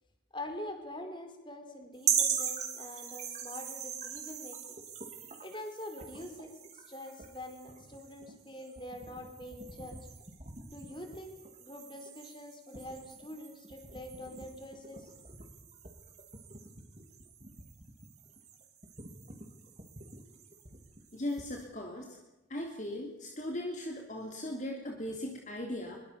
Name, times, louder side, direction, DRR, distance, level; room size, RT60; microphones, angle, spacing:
voice 1, 0.3-4.8 5.4-10.0 10.7-15.1, left 1 dB, 25° left, 5 dB, 4.6 m, -45 dB
sound 1, 2.0-21.6, right 7 dB, 40° right, 4.3 m, -40 dB
voice 2, 21.1-22.1 22.5-26.0, left 1 dB, 40° left, 2 dB, 3.3 m, -38 dB
24.0 x 23.5 x 7.1 m, 1.0 s
head